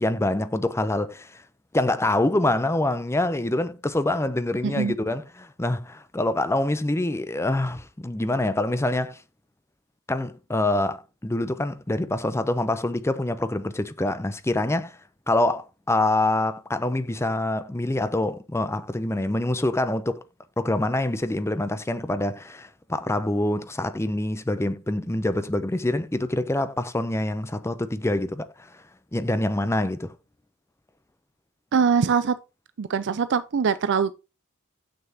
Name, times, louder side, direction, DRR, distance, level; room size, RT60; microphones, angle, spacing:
voice 1, 0.0-1.4 1.7-9.2 10.1-15.0 15.3-20.2 20.6-28.8 29.1-30.1, left 1 dB, 10° left, 0.6 m, -25 dB
voice 2, 4.6-4.9 31.7-32.4 32.8-34.1, right 6 dB, 55° right, 0.5 m, -22 dB
6.9 x 6.5 x 2.8 m
head